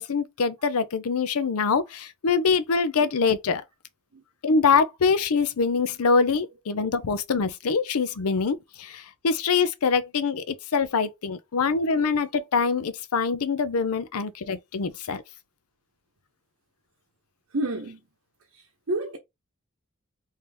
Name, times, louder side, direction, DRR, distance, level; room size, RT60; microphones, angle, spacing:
voice 1, 0.0-3.6 4.4-15.2, left 5 dB, 85° left, 0.5 m, -24 dB
voice 2, 17.5-18.0 18.9-19.2, right 1 dB, 70° right, 0.8 m, -28 dB
3.4 x 2.8 x 3.3 m
head